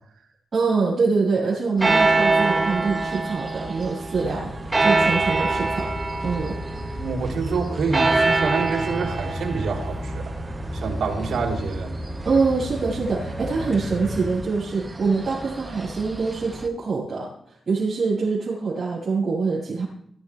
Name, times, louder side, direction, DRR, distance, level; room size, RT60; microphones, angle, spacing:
voice 1, 0.5-5.9 6.2-6.6 10.7-10.8 12.2-19.8, right 4 dB, 40° right, -9 dB, 7.5 m, -24 dB
sound 1, 1.8-16.7, right 3 dB, 20° right, 1.5 m, -26 dB
sound 2, 4.1-14.3, equal, 10° left, 3.6 m, -34 dB
voice 2, 6.9-10.3 10.7-11.9, right 4 dB, 85° right, 1 dB, 3.7 m, -27 dB
22.0 x 14.0 x 3.6 m, 0.69 s
wide cardioid pair, 130°, 0 cm